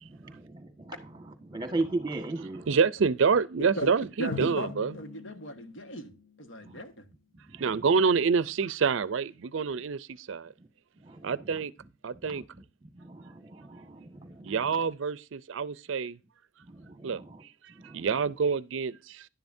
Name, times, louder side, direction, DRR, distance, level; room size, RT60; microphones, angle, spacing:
voice 1, 0.0-2.8 6.6-6.8 7.5-7.9 10.6-10.7 11.0-11.6 12.3-12.6 13.0-14.8 16.6-17.4 17.7-18.1, right 2 dB, 20° right, 1.5 m, -38 dB
voice 2, 2.7-4.9 7.6-10.5 11.2-11.7 12.0-12.4 14.4-16.2 17.0-17.2 17.8-19.3, right 5 dB, 70° right, 0.5 m, -27 dB
voice 3, 3.8-7.0, equal, 70° left, 1.5 m, -38 dB
Drum, 4.3-7.0, left 3 dB, 85° left, 2.3 m, -43 dB
11.0 x 10.5 x 2.6 m
head